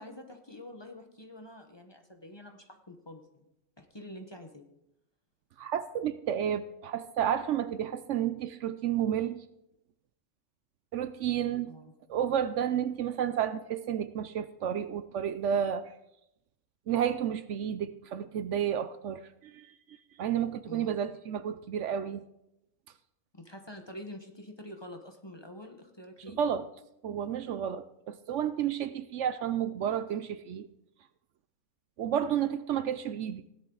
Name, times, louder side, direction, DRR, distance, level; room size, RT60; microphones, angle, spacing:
voice 1, 0.0-3.5 3.8-4.6 11.7-11.9 20.6-21.0 23.3-26.4, left 1 dB, 20° left, 4 dB, 1.1 m, -47 dB
voice 2, 5.6-9.4 10.9-11.7 12.1-15.9 16.9-22.2 26.3-26.6 27.0-30.7 32.0-33.4, right 9 dB, 70° right, 12 dB, 0.9 m, -31 dB
16.5 x 11.0 x 3.9 m, 0.84 s
omnidirectional pair, 1.4 m